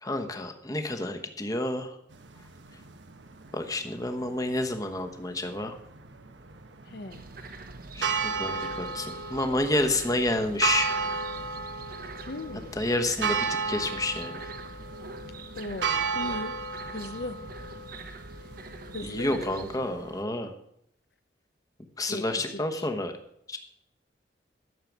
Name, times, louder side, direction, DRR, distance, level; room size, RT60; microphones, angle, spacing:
voice 1, 0.0-1.9 3.5-5.7 7.9-10.9 12.8-14.5 19.0-20.5 22.0-23.1 23.5-23.6, left 2 dB, 20° left, 5 dB, 1.1 m, -29 dB
sound 1, 2.1-20.2, right 5 dB, 80° right, 1.1 m, -35 dB
voice 2, 6.9-7.2 12.3-12.8 15.6-16.5 16.9-17.4 18.9-19.6 22.0-22.9, left 2 dB, 60° left, 9 dB, 0.7 m, -38 dB
sound 2, 7.1-19.8, right 3 dB, 50° right, 1.1 m, -45 dB
12.5 x 6.7 x 7.3 m, 0.75 s
head